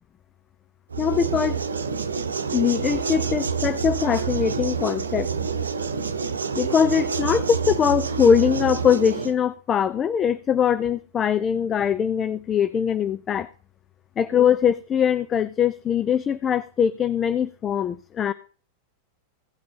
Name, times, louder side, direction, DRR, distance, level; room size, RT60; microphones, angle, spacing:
sound 1, 0.9-9.3, right 5 dB, 70° right, 0.9 m, -27 dB
voice 1, 1.0-1.6 2.5-5.3 6.6-13.5 14.2-18.3, left 8 dB, 25° left, 15 dB, 0.5 m, -22 dB
16.0 x 6.0 x 5.6 m, 0.42 s
figure-of-eight pair, 90°, 0 cm